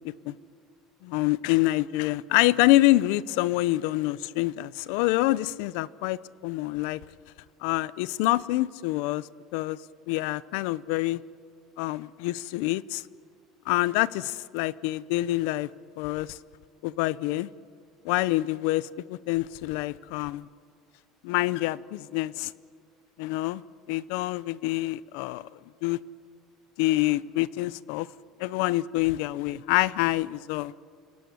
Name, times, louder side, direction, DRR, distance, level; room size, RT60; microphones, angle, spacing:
voice 1, 1.0-7.0 7.6-9.8 10.1-11.2 11.8-13.0 13.7-15.7 16.0-16.4 16.8-17.5 18.0-20.5 21.2-22.5 23.2-23.6 23.9-25.4 25.8-26.0 26.8-28.1 28.4-30.7, left 18 dB, 75° left, 19 dB, 0.7 m, -26 dB
29.0 x 18.0 x 9.7 m, 2.3 s
cardioid pair, 160°, 0 cm